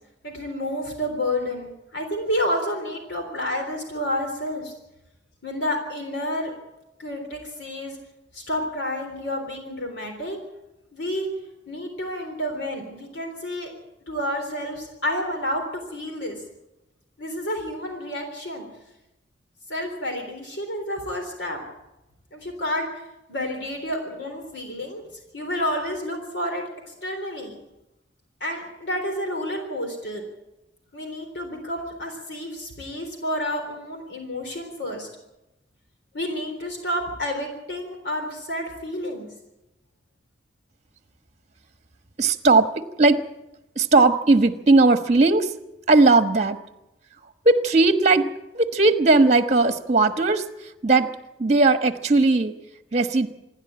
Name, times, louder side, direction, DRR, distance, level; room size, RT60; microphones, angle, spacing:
voice 1, 0.2-4.7 5.4-6.5 7.0-8.0 8.3-10.4 10.9-11.3 11.7-13.7 14.1-16.4 17.2-18.7 19.7-21.6 22.3-22.9 23.3-25.0 25.3-27.6 28.4-30.2 30.9-35.1 36.1-39.3, left 1 dB, 65° left, 3 dB, 3.7 m, -30 dB
voice 2, 42.2-42.7 43.0-43.2 43.7-45.5 45.9-46.6 47.4-48.3 48.5-50.4 50.8-51.1 51.4-52.5 52.9-53.3, right 3 dB, 35° right, 9 dB, 1.2 m, -18 dB
27.5 x 11.0 x 8.7 m, 0.95 s
head